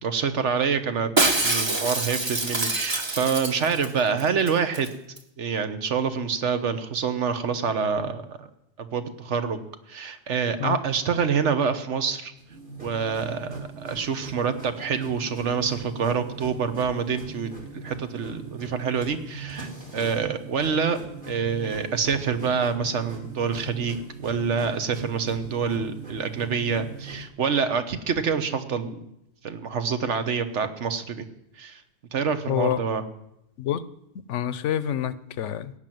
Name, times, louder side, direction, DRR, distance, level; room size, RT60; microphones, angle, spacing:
voice 1, 0.0-1.1 1.4-4.9 5.4-8.5 8.8-9.6 9.9-12.3 12.8-21.0 21.3-29.0 29.4-31.2 31.6-31.8 32.1-33.0, right 6 dB, 80° right, 9 dB, 1.4 m, -26 dB
Shatter, 1.2-3.9 4.2-4.3 4.5-4.9 5.2-5.3, right 2 dB, 25° right, 1.1 m, -25 dB
sound 1, 12.4-27.3, right 3 dB, 45° right, 2.8 m, -40 dB
voice 2, 32.5-32.8 33.6-33.8 34.3-35.7, left 11 dB, 85° left, 15 dB, 1.0 m, -27 dB
17.0 x 6.0 x 9.1 m, 0.81 s
omnidirectional pair, 1.2 m